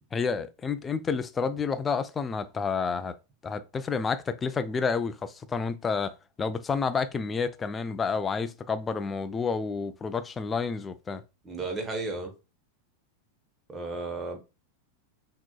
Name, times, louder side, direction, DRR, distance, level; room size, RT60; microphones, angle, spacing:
voice 1, 0.1-3.1 3.4-11.2, left 5 dB, 20° left, 0.4 m, -30 dB
voice 2, 11.4-12.3 13.7-14.4, right 3 dB, 15° right, 1.0 m, -33 dB
5.8 x 3.0 x 2.2 m
figure-of-eight pair, 90°, 0 cm